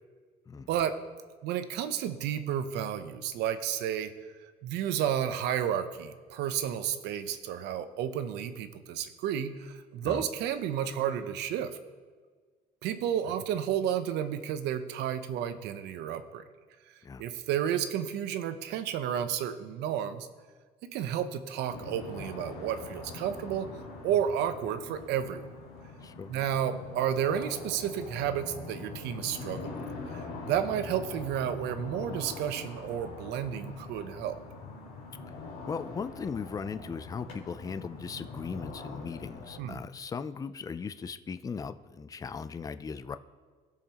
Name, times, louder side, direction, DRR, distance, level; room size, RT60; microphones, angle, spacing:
voice 1, 1.4-4.1 4.6-11.8 12.8-16.4 17.2-20.3 20.8-23.7 24.0-25.4 26.3-29.8 30.1-34.4 39.6-39.8, right 9 dB, 85° right, 10 dB, 0.7 m, -31 dB
sound 1, 21.7-39.6, left 3 dB, 85° left, 2.7 m, -43 dB
voice 2, 26.0-26.3 35.7-43.2, left 5 dB, 20° left, 12 dB, 0.4 m, -38 dB
18.0 x 6.6 x 2.9 m, 1.5 s
cardioid pair, 110°, 17 cm